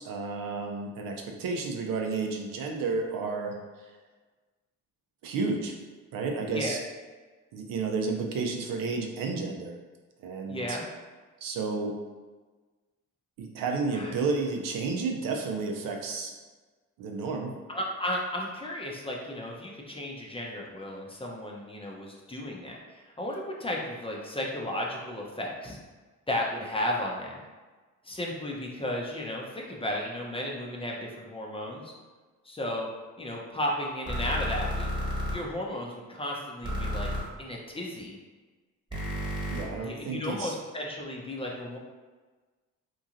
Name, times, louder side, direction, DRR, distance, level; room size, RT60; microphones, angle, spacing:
voice 1, 0.0-3.6 5.2-5.7 6.1-6.8 7.5-9.7 10.2-10.8 11.4-12.0 13.4-16.3 17.0-17.5 39.5-40.6, right 4 dB, 80° right, 2 dB, 0.5 m, -31 dB
voice 2, 10.5-10.8 13.9-14.1 17.7-25.8 26.3-27.4 28.0-31.9 32.4-32.9 33.2-34.9 35.3-37.1 37.4-38.2 39.8-41.8, left 1 dB, 15° left, -2 dB, 0.6 m, -34 dB
sound 1, 34.1-35.3 36.6-37.2 38.9-39.6, equal, 15° right, 1.1 m, -31 dB
3.0 x 2.6 x 2.5 m, 1.3 s
cardioid pair, 70°, 33 cm